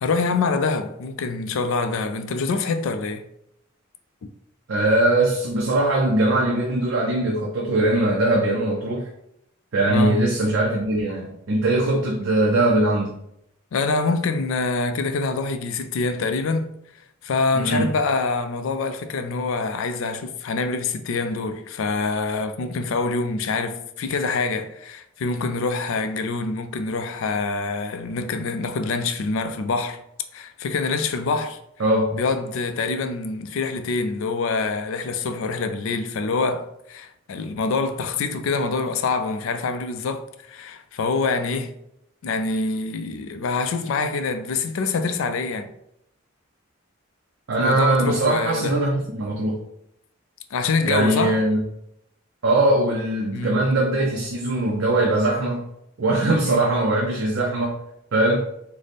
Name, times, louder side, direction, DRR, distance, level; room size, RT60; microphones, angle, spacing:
voice 1, 0.0-3.2 9.9-10.2 13.7-16.7 17.2-30.0 30.3-31.6 32.1-41.7 42.2-45.7 47.6-48.8 50.5-51.4 53.3-53.6 56.4-56.7, left 4 dB, 65° left, 0.4 m, -25 dB
voice 2, 4.7-9.1 9.7-13.2 17.5-17.9 31.8-32.1 47.5-49.6 50.9-51.6 52.4-55.7 56.0-57.8 58.1-58.5, right 2 dB, 65° right, 0.5 m, -21 dB
3.2 x 2.1 x 4.0 m
head